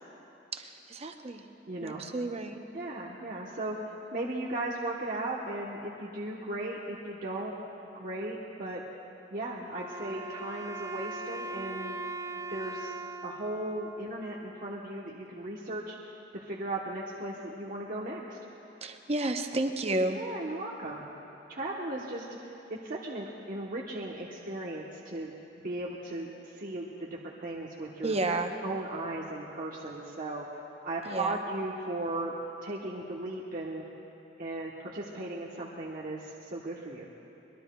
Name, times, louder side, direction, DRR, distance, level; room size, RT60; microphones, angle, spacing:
voice 1, 0.5-1.4 1.8-2.6 18.8-20.2 28.0-28.5 31.1-31.4, right 2 dB, 35° right, 5 dB, 0.8 m, -31 dB
voice 2, 1.7-2.0 2.7-7.5 7.9-8.8 9.3-12.0 12.5-16.1 16.3-18.4 20.1-21.1 21.5-22.3 22.7-28.2 28.6-32.4 32.6-33.9 34.4-37.1, right 2 dB, 50° right, -3 dB, 1.0 m, -37 dB
Wind instrument woodwind instrument, 9.7-14.9, right 3 dB, 20° right, 0.5 m, -40 dB
22.5 x 20.5 x 2.3 m, 3.0 s
head